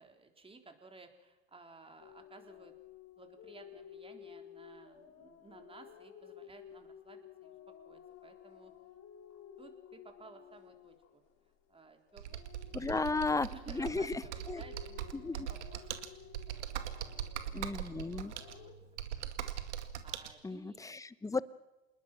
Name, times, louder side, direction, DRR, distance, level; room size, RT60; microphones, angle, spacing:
voice 1, 0.0-2.7 3.2-8.7 9.6-16.0 16.7-17.5 18.3-19.3 20.0-20.9 21.3-21.4, right 3 dB, 15° right, 5 dB, 3.8 m, -57 dB
sound 1, 2.0-11.8 12.1-18.7, left 9 dB, 45° left, 3.9 m, -54 dB
Computer keyboard, 12.2-20.3, right 10 dB, 90° right, 2.1 m, -41 dB
voice 2, 12.7-13.5 13.7-14.1 14.5-14.6 15.1-15.5 17.5-18.3 20.4-21.4, left 3 dB, 10° left, 17 dB, 0.9 m, -34 dB
27.5 x 20.5 x 6.1 m, 1.1 s
hypercardioid pair, 100°, 34 cm